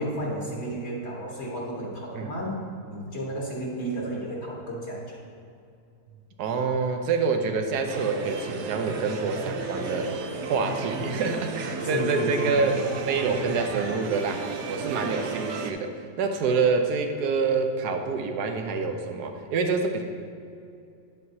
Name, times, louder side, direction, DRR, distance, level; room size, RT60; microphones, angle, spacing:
voice 1, 0.0-5.2 11.8-12.7, right 1 dB, 45° left, -3 dB, 1.6 m, -32 dB
voice 2, 6.4-10.1 10.4-15.9 16.2-20.0, right 4 dB, 85° right, 5 dB, 1.3 m, -27 dB
sound 1, 7.9-15.7, right 4 dB, 60° right, 0.8 m, -33 dB
9.3 x 7.5 x 2.8 m, 2.5 s
omnidirectional pair, 1.7 m